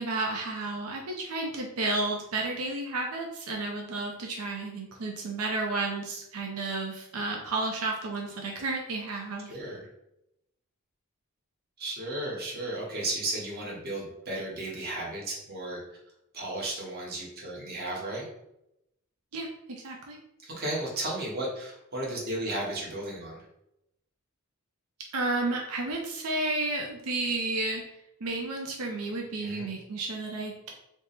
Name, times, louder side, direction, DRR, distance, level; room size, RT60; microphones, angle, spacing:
voice 1, 0.0-9.5 19.3-20.2 25.1-27.8 28.2-30.7, right 2 dB, 90° right, 1 dB, 0.5 m, -32 dB
voice 2, 9.4-9.9 11.8-15.8 16.3-18.3 20.4-23.4 29.4-29.7, right 1 dB, 45° right, -3 dB, 1.1 m, -34 dB
3.5 x 2.0 x 3.9 m, 0.83 s
head